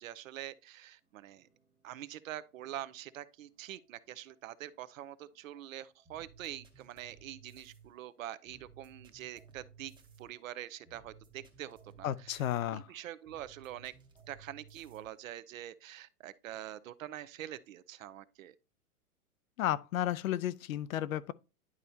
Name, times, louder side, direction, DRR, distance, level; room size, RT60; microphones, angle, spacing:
voice 1, 0.0-1.5 1.8-9.9 10.2-12.4 12.7-13.9 14.3-18.5, right 12 dB, 60° right, 0.7 m, -45 dB
sound 1, 1.0-15.3, right 5 dB, 10° right, 0.9 m, -60 dB
voice 2, 12.0-12.9 19.6-21.3, left 12 dB, 65° left, 0.6 m, -33 dB
11.0 x 4.3 x 2.7 m
hypercardioid pair, 130°, 45 cm